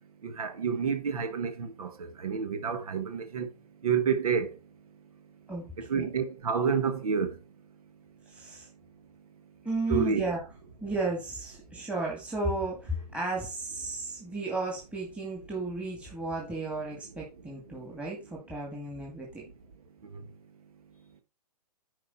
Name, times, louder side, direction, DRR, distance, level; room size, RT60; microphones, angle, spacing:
voice 1, 0.2-3.5 3.8-4.5 5.8-7.4 9.9-10.2 20.1-20.2, right 6 dB, 65° right, 1.7 m, -29 dB
voice 2, 8.3-8.7 9.6-10.4 10.8-19.4, right 2 dB, 5° right, 2.1 m, -34 dB
9.9 x 5.2 x 4.3 m
hypercardioid pair, 130°, 20 cm